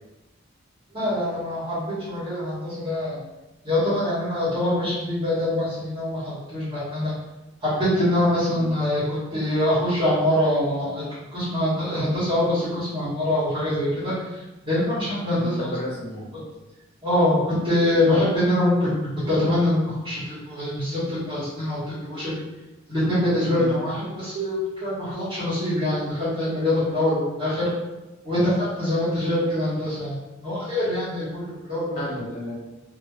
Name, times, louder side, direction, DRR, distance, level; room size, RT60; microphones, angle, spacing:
voice 1, 0.9-3.2 3.6-7.1 7.6-11.0 11.3-15.7 17.0-17.4 17.6-20.2 20.4-22.4 22.9-27.7 28.2-32.0, left 1 dB, 25° right, -14 dB, 1.4 m, -24 dB
voice 2, 15.3-16.3 23.5-23.7 32.0-32.6, left 1 dB, 30° left, -5 dB, 0.5 m, -33 dB
3.0 x 2.3 x 3.1 m, 1.0 s
head